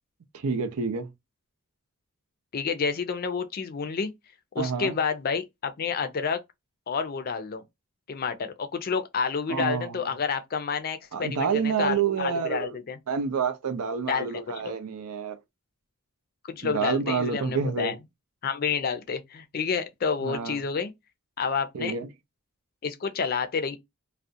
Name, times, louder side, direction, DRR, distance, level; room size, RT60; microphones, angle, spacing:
voice 1, 0.3-1.1 4.6-5.0 9.5-10.0 11.1-12.8 13.1-15.4 16.6-17.9 20.2-20.6 21.7-22.1, right 6 dB, 90° right, 0.5 m, -28 dB
voice 2, 2.5-4.1 4.5-6.4 6.9-7.6 8.1-13.0 14.1-14.7 16.5-18.0 18.4-20.9 21.4-21.9 22.8-23.8, left 6 dB, 45° left, 0.4 m, -29 dB
2.4 x 2.1 x 2.5 m
head